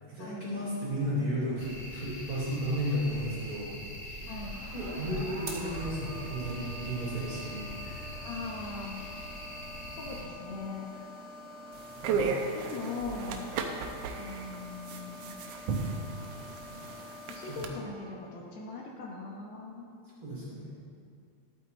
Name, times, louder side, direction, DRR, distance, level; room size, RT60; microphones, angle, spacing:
voice 1, 0.0-3.7 4.7-8.2 10.9-11.0 11.6-12.5 17.5-17.6 20.2-20.8, equal, 30° right, -8 dB, 3.3 m, -34 dB
sound 1, 1.6-10.2, equal, 45° left, 3.1 m, -42 dB
sound 2, 4.2-17.8, left 1 dB, 50° right, 1.2 m, -46 dB
voice 2, 4.3-4.6 8.2-9.0 10.0-10.9 12.3-13.5 14.2-15.4 17.3-19.9, left 3 dB, 70° left, -2 dB, 2.2 m, -40 dB
sound 3, 11.7-17.7, right 4 dB, 70° right, 1.6 m, -35 dB
12.5 x 8.6 x 4.1 m, 2.3 s
omnidirectional pair, 3.5 m